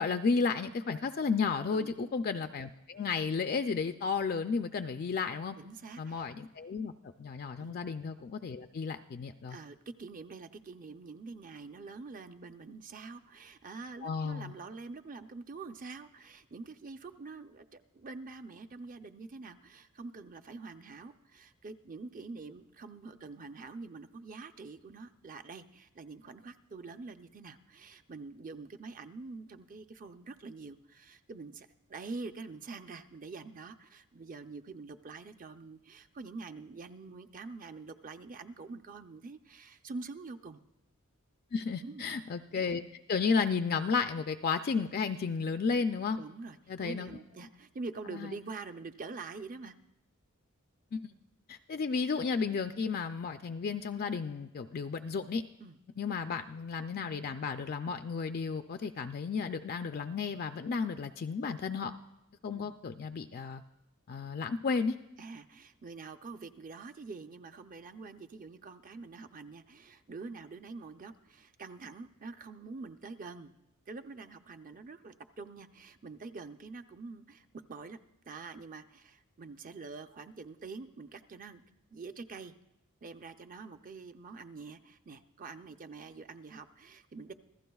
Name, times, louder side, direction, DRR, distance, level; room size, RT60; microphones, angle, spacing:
voice 1, 0.0-5.6 6.0-9.6 14.0-14.5 41.5-42.8 43.1-46.2 46.7-47.2 48.1-48.4 50.9-51.1 51.5-55.4 56.0-61.9 62.4-63.6 64.1-65.0, left 5 dB, 45° left, 8 dB, 0.4 m, -33 dB
voice 2, 1.7-2.1 5.6-6.3 7.6-7.8 9.5-40.6 41.8-42.1 46.2-49.8 55.6-55.8 62.5-62.8 65.2-73.5 73.9-78.0 78.3-81.6 81.9-82.5 83.0-87.3, right 4 dB, 40° right, 8 dB, 0.5 m, -46 dB
26.5 x 15.0 x 2.3 m, 0.91 s
head